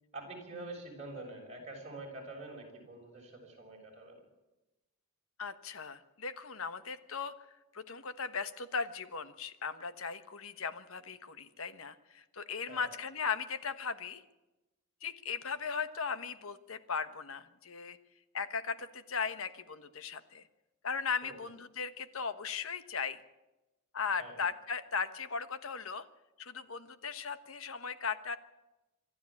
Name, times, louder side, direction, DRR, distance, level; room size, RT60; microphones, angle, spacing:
voice 1, 0.1-4.2 12.7-12.9 21.2-21.4 24.2-24.4, right 2 dB, 30° right, 0 dB, 6.3 m, -46 dB
voice 2, 5.4-7.3 7.7-14.2 15.0-18.0 18.3-20.4 20.8-23.2 23.9-26.1 26.4-28.4, left 5 dB, 70° left, 11 dB, 1.2 m, -37 dB
26.0 x 12.5 x 8.6 m, 1.0 s
head